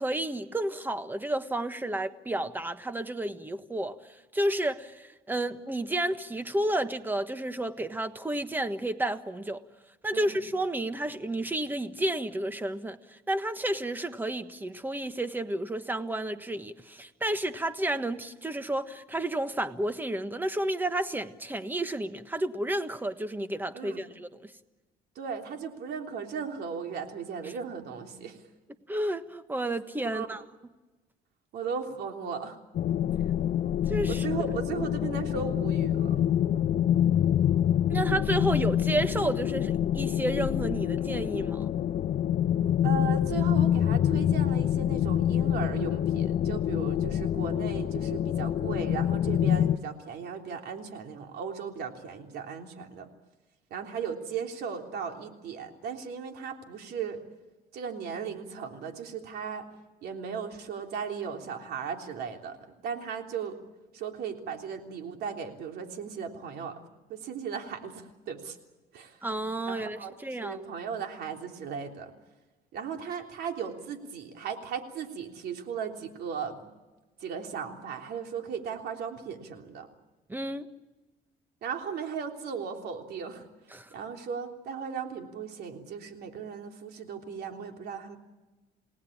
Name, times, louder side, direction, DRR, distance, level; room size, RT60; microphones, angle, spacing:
voice 1, 0.0-4.0 4.3-9.6 10.0-24.5 27.4-27.5 28.9-30.4 33.9-34.2 37.9-41.7 69.2-70.6 80.3-80.7 83.7-83.9, right 1 dB, 10° right, 1.4 m, -31 dB
voice 2, 25.2-28.4 30.1-30.3 31.5-32.6 34.1-36.2 42.8-53.1 53.7-57.2 57.7-59.6 60.0-63.6 63.9-66.8 67.1-68.6 68.9-69.2 69.7-70.1 70.4-72.1 72.7-76.7 77.2-79.9 81.6-83.5 83.9-88.2, right 6 dB, 70° right, 3.4 m, -36 dB
sound 1, 32.7-49.8, left 10 dB, 55° left, 0.9 m, -26 dB
29.0 x 18.5 x 8.7 m
cardioid pair, 110°, 17 cm